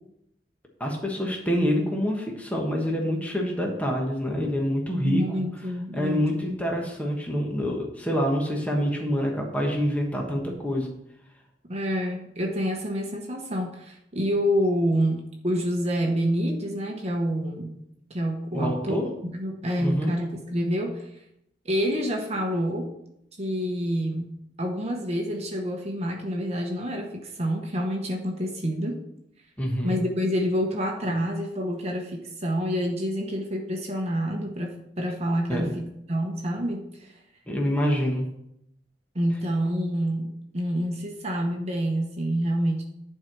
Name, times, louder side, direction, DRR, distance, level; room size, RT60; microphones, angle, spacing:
voice 1, 0.8-5.4 5.9-10.9 18.5-19.0 19.8-20.1 29.6-30.0 35.5-35.7 37.5-38.3, equal, 10° left, -1 dB, 1.3 m, -26 dB
voice 2, 5.0-6.4 11.7-17.7 18.1-21.2 21.6-22.9 23.4-24.3 24.6-29.0 29.8-37.1 39.1-42.8, equal, 40° right, 1 dB, 1.0 m, -27 dB
11.0 x 4.6 x 6.1 m, 0.80 s
head